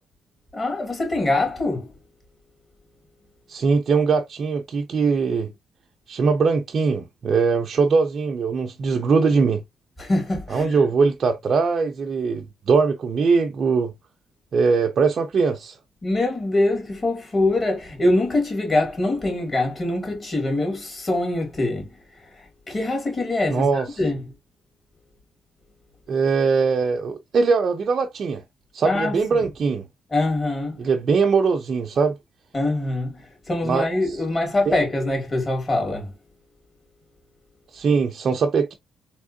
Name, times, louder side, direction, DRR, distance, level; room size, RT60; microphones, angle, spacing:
voice 1, 0.5-1.9 10.0-10.8 16.0-24.3 28.8-29.5 30.1-30.8 32.5-36.2, left 2 dB, 30° left, 2.0 m, -24 dB
voice 2, 3.5-5.5 6.1-9.6 10.5-13.9 14.5-15.8 23.5-23.8 26.1-28.4 28.7-29.8 30.8-32.2 33.6-33.8 34.7-34.8 37.7-38.7, right 5 dB, 50° right, 0.5 m, -21 dB
3.5 x 3.0 x 2.6 m
cardioid pair, 90°, 0 cm